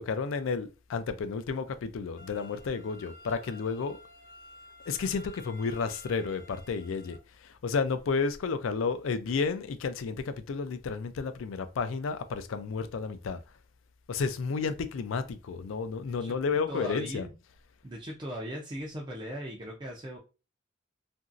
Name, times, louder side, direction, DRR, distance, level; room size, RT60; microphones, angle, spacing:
voice 1, 0.0-4.0 4.9-13.4 14.1-17.3, left 5 dB, 90° left, 0.4 m, -32 dB
sound 1, 2.2-7.2, left 1 dB, 45° left, 0.6 m, -52 dB
voice 2, 16.7-17.3 17.8-20.2, equal, 25° right, 0.4 m, -38 dB
2.9 x 2.6 x 2.4 m
head